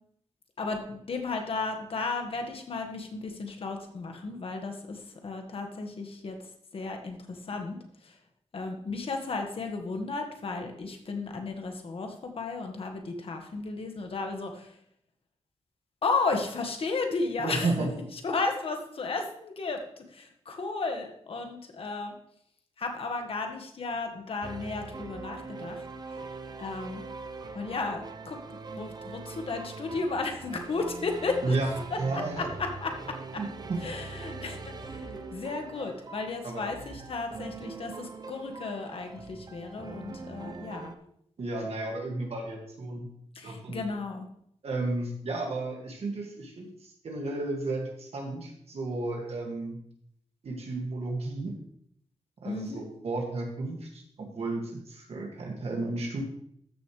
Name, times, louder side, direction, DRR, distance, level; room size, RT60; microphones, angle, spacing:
voice 1, 0.6-6.4 6.7-7.8 8.0-8.2 8.5-14.7 16.0-17.7 18.1-22.1 22.8-25.8 26.6-27.0 27.5-28.4 28.8-31.5 31.9-32.9 33.3-33.4 33.8-40.9 43.3-44.3 52.4-52.9, left 3 dB, 55° left, 4 dB, 1.7 m, -34 dB
voice 2, 17.4-17.9 31.4-32.5 33.4-33.8 36.4-36.6 41.4-43.1 43.4-43.8 44.6-49.8 50.4-51.6 52.4-54.0 54.3-56.2, right 2 dB, 65° right, 0 dB, 2.1 m, -33 dB
sound 1, 24.4-41.0, right 4 dB, 35° right, 0.8 m, -42 dB
13.5 x 6.6 x 3.3 m, 0.70 s
wide cardioid pair, 100°, 11 cm